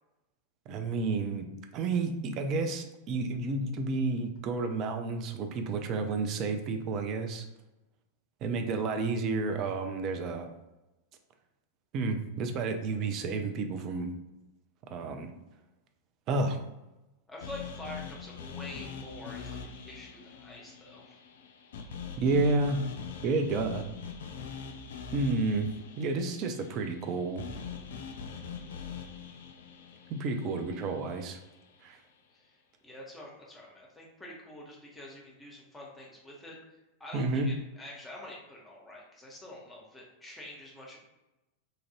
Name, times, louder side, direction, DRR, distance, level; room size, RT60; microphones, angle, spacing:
voice 1, 0.7-1.5 1.7-7.4 8.4-10.5 11.9-14.1 14.9-15.3 16.3-16.6 22.2-22.8 23.2-23.8 25.1-25.7 26.0-27.4 30.1-31.4 31.8-32.0 37.1-37.5, right 3 dB, 35° right, 6 dB, 0.4 m, -30 dB
voice 2, 17.3-21.2 32.3-32.5 32.8-36.6 37.0-41.0, left 1 dB, 10° left, -3 dB, 0.9 m, -46 dB
sound 1, 17.4-31.6, left 6 dB, 60° left, 0.3 m, -43 dB
2.8 x 2.5 x 3.0 m, 0.99 s
figure-of-eight pair, 90°, 0 cm